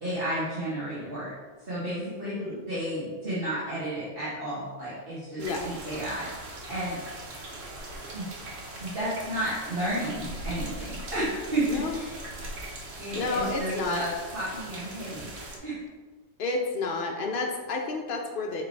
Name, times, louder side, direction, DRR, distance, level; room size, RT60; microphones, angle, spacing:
voice 1, 0.0-1.3 1.6-7.0 8.1-8.3 8.8-12.2 13.0-15.3 15.6-15.8, right 1 dB, 50° right, -11 dB, 1.9 m, -32 dB
voice 2, 2.2-2.6 5.4-5.6 11.7-12.0 13.1-14.0 16.4-18.6, left 3 dB, 55° left, 1 dB, 0.7 m, -30 dB
sound 1, 5.4-15.6, right 1 dB, 85° right, 1.5 m, -40 dB
7.1 x 3.2 x 4.5 m, 1.4 s
omnidirectional pair, 1.3 m